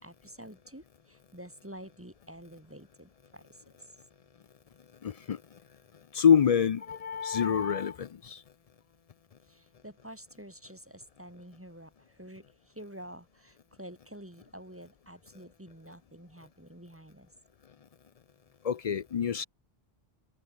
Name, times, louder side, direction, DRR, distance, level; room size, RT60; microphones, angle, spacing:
voice 1, 0.0-3.9 9.4-17.3, right 1 dB, 15° right, 1.8 m, -49 dB
voice 2, 5.0-5.4 6.1-8.4 18.6-19.5, left 7 dB, 50° left, 0.5 m, -26 dB
omnidirectional pair, 1.0 m